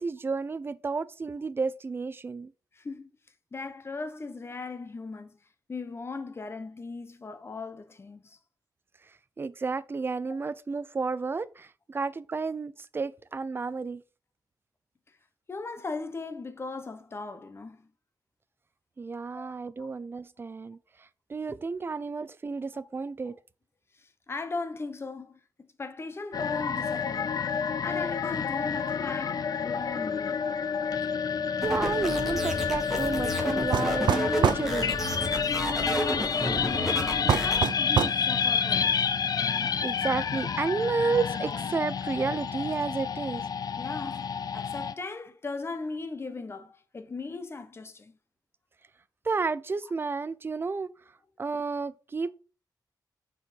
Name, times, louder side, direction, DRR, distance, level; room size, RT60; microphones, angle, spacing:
voice 1, 0.0-2.5 9.4-14.0 19.0-20.8 21.3-23.4 31.6-35.0 39.8-43.4 49.2-50.9 51.4-52.3, right 4 dB, 30° right, 0.4 m, -31 dB
voice 2, 2.7-3.1 3.5-5.4 5.7-8.4 15.5-17.9 19.3-19.9 24.0-27.6 27.8-30.5 35.8-39.0 43.8-48.2, left 3 dB, 35° left, 0.9 m, -38 dB
sound 1, 26.3-44.9, left 6 dB, 60° left, 0.5 m, -29 dB
sound 2, 31.6-37.6, equal, 5° right, 1.8 m, -32 dB
sound 3, 33.7-34.7 37.3-38.2, right 8 dB, 90° right, 0.4 m, -25 dB
6.2 x 4.6 x 5.1 m
wide cardioid pair, 125°, 7 cm